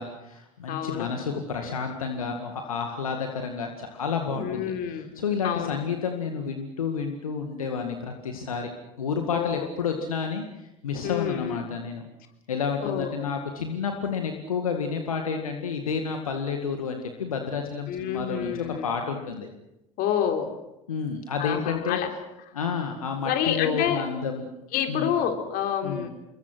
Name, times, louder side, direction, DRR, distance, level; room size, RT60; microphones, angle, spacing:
voice 1, 0.0-8.7 9.0-12.0 12.5-18.5 18.8-19.5 20.9-22.0 22.5-24.4 24.9-25.1 25.8-26.1, left 6 dB, 85° left, 4 dB, 2.0 m, -30 dB
voice 2, 0.7-1.4 4.3-5.1 5.4-5.8 9.3-9.7 11.0-11.6 12.8-13.1 17.9-18.9 20.0-20.5 21.4-22.1 23.2-24.0 24.7-26.1, left 9 dB, 55° left, 5 dB, 3.8 m, -28 dB
27.0 x 23.0 x 6.2 m, 0.91 s
hypercardioid pair, 65°, 18 cm